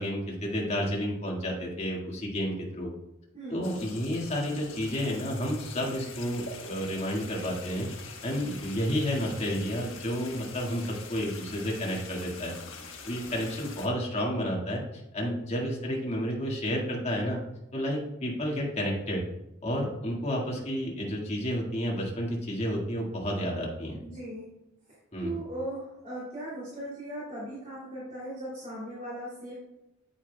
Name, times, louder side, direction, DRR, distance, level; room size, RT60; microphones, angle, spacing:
voice 1, 0.0-2.9 3.5-7.9 8.2-12.5 13.0-14.8 15.1-17.4 17.7-19.2 19.6-24.0 25.1-25.3, equal, 35° left, -2 dB, 1.8 m, -31 dB
voice 2, 3.3-3.6 24.0-24.4 25.2-29.5, right 1 dB, 40° right, -7 dB, 2.8 m, -38 dB
sound 1, 3.6-13.9, left 4 dB, 70° left, 1.3 m, -45 dB
8.6 x 8.5 x 2.2 m, 0.91 s
head